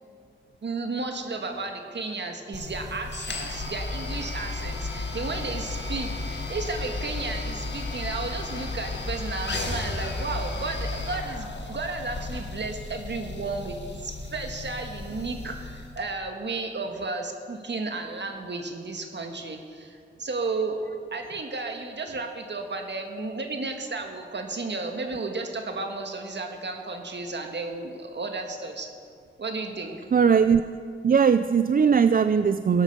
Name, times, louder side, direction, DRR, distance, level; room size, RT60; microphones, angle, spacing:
voice 1, 0.6-20.8 21.1-28.9 29.4-30.0, right 3 dB, 60° right, 4 dB, 1.6 m, -33 dB
sound 1, 2.5-16.0, left 3 dB, 65° left, 1.8 m, -34 dB
voice 2, 30.1-30.6 31.0-32.8, right 6 dB, 45° right, 11 dB, 0.4 m, -19 dB
17.5 x 8.9 x 6.6 m, 2.3 s
wide cardioid pair, 90°, 20 cm